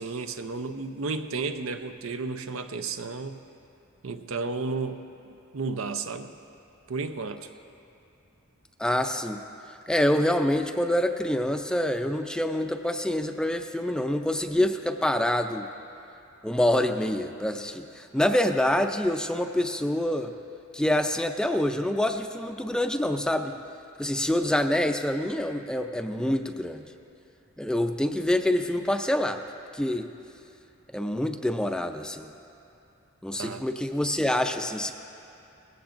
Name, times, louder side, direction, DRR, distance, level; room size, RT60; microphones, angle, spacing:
voice 1, 0.0-3.4 4.0-5.0 5.5-6.3 6.9-7.5 33.4-33.6, right 4 dB, 90° right, 8 dB, 0.6 m, -32 dB
voice 2, 8.8-9.4 9.9-15.7 16.4-20.3 20.7-23.5 24.0-26.9 27.6-29.4 29.7-30.1 30.9-32.3 33.2-34.9, left 1 dB, 5° left, 6 dB, 0.4 m, -26 dB
18.0 x 16.0 x 2.6 m, 2.6 s
head